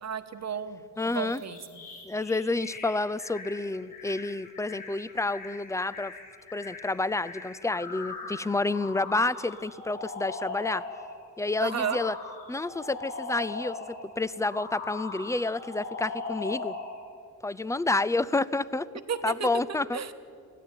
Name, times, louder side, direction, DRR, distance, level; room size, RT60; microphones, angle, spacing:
voice 1, 0.0-1.6 11.6-12.0 19.1-19.5 19.9-20.1, right 7 dB, 40° right, 10 dB, 1.2 m, -32 dB
sound 1, 1.0-11.1 11.6-14.0 14.5-17.0, left 3 dB, 55° left, 6.7 m, -40 dB
voice 2, 1.0-1.4 2.0-6.1 6.5-10.8 11.4-12.2 12.5-16.8 17.4-18.9 19.2-20.0, left 2 dB, 10° left, 18 dB, 0.4 m, -29 dB
20.0 x 15.0 x 9.2 m, 2.4 s
cardioid pair, 90°, 39 cm